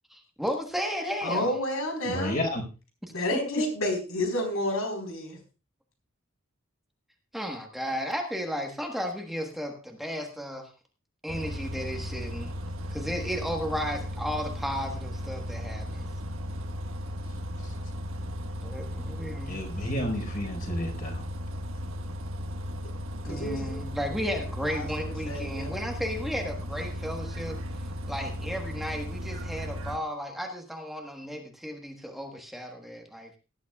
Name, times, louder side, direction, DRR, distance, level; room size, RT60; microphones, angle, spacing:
voice 1, 0.1-1.5 3.3-3.4 7.3-10.7 11.2-12.5 12.9-16.1 18.6-19.5 23.3-27.6 28.1-33.4, equal, ahead, 2 dB, 1.3 m, -34 dB
voice 2, 1.2-2.4 3.1-5.4 22.8-22.9 23.3-23.8 24.7-25.7, left 1 dB, 85° left, 4 dB, 4.3 m, -30 dB
voice 3, 2.0-2.6 17.6-17.7 19.5-21.2, left 1 dB, 45° left, 2 dB, 4.7 m, -31 dB
Bus, 11.3-30.0, equal, 70° right, 1.4 m, -36 dB
18.5 x 11.5 x 2.3 m, 0.33 s
head